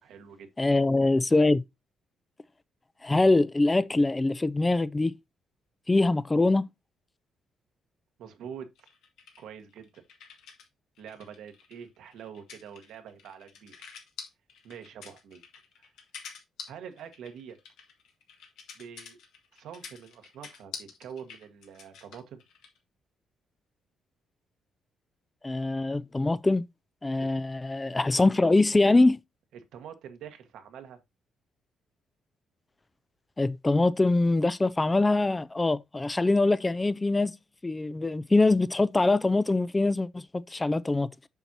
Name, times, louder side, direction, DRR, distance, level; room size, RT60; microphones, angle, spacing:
voice 1, 0.0-0.5 8.2-8.9 9.4-10.0 11.0-14.0 14.6-15.4 16.7-17.6 18.7-19.2 19.5-22.4 27.2-27.3 29.5-31.0, right 8 dB, 80° right, 1.2 m, -45 dB
voice 2, 0.6-1.6 3.0-5.1 5.9-6.6 25.4-26.6 27.0-29.2 33.4-37.3 37.6-41.1, left 2 dB, 20° left, 0.3 m, -23 dB
sound 1, 8.7-10.7 11.0-22.8, left 6 dB, 85° left, 1.8 m, -47 dB
7.1 x 5.8 x 2.7 m
cardioid pair, 90°, 0 cm